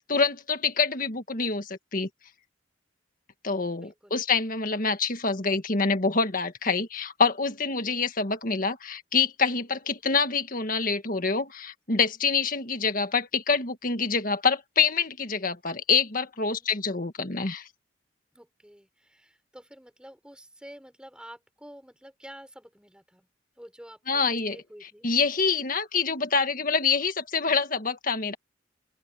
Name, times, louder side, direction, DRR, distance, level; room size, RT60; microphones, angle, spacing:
voice 1, 0.1-2.1 3.4-17.7 24.1-24.6 25.0-28.3, left 5 dB, 45° left, 1.8 m, -26 dB
voice 2, 3.7-4.2 7.5-7.7 16.3-16.7 18.3-23.3 23.6-25.1, equal, 5° right, 6.9 m, -49 dB
open air
head